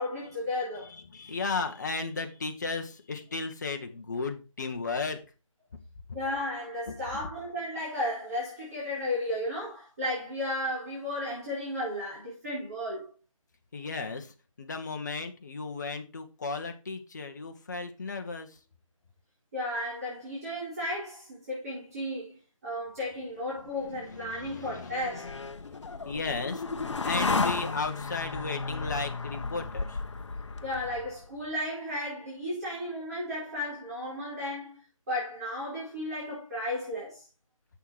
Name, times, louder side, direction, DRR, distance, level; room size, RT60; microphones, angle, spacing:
voice 1, 0.0-0.9 6.1-13.1 19.5-25.3 30.6-34.8 35.1-37.2, left 1 dB, 30° right, 4.1 m, -34 dB
voice 2, 0.8-5.2 6.9-7.0 13.7-18.6 24.1-30.0, left 4 dB, 35° left, 1.1 m, -35 dB
sound 1, 23.9-31.3, left 4 dB, 55° left, 0.9 m, -34 dB
7.7 x 6.6 x 4.8 m
figure-of-eight pair, 165°, 17 cm